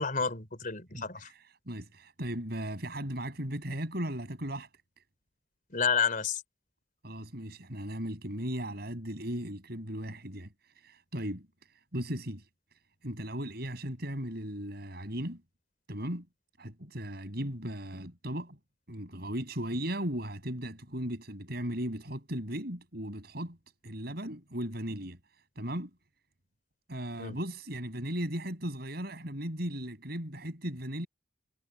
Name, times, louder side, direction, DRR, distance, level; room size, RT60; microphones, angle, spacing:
voice 1, 0.0-1.3 5.7-6.4 27.2-27.4, left 6 dB, 45° left, 3.7 m, -30 dB
voice 2, 0.9-4.7 7.0-10.5 10.8-11.5 11.9-12.5 13.0-15.4 15.9-16.3 16.6-18.6 18.9-23.6 23.8-25.2 25.6-25.9 26.9-31.1, equal, 60° right, 7.4 m, -37 dB
head